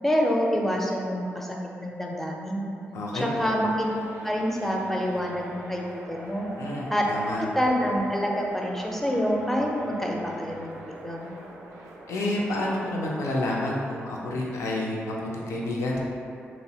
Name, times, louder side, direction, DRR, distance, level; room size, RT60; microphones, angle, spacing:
voice 1, 0.0-2.6 3.1-3.9 4.2-6.5 6.9-7.0 7.4-10.8 11.0-11.3, equal, 5° left, -1 dB, 0.4 m, -27 dB
voice 2, 2.9-3.5 6.6-7.4 12.1-16.0, left 1 dB, 75° left, -3 dB, 0.4 m, -29 dB
sound 1, 3.4-13.9, right 1 dB, 85° right, 0.3 m, -44 dB
2.7 x 2.0 x 2.7 m, 2.4 s
supercardioid pair, 45°, 5 cm